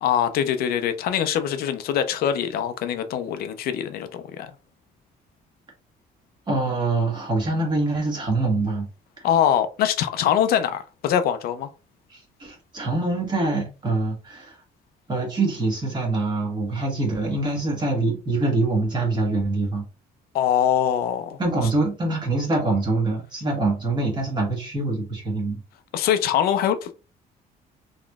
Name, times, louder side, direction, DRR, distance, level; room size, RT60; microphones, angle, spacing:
voice 1, 0.0-4.5 9.2-11.7 20.3-21.4 25.9-26.9, left 9 dB, 70° left, 0.4 m, -23 dB
voice 2, 6.5-8.9 12.1-14.6 15.1-19.8 21.4-25.6, right 2 dB, 25° right, 1.4 m, -24 dB
3.8 x 3.0 x 2.3 m
cardioid pair, 165°, 16 cm